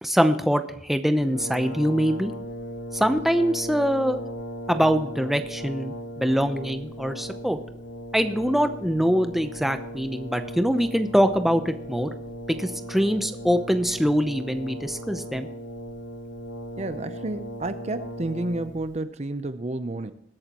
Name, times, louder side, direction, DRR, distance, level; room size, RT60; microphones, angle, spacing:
voice 1, 0.0-2.3 2.9-4.2 4.7-7.6 8.1-12.1 12.5-15.5, equal, ahead, 0.7 m, -23 dB
Brass instrument, 1.2-19.0, equal, 70° left, 1.2 m, -37 dB
voice 2, 16.8-20.1, right 2 dB, 35° right, 0.6 m, -30 dB
21.0 x 8.7 x 3.0 m
head